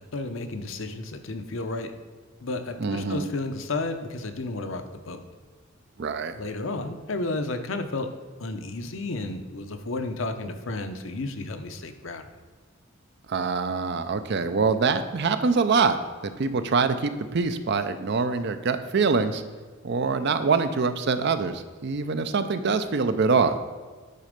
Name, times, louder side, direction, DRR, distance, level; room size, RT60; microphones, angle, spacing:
voice 1, 0.1-1.9 2.4-5.2 6.3-8.1 8.4-12.3, left 2 dB, 70° left, 7 dB, 0.7 m, -32 dB
voice 2, 2.8-3.3 6.0-6.3 13.3-16.0 16.2-19.4 19.8-23.6, right 4 dB, 55° right, 10 dB, 0.5 m, -24 dB
9.4 x 4.3 x 5.1 m, 1.5 s
head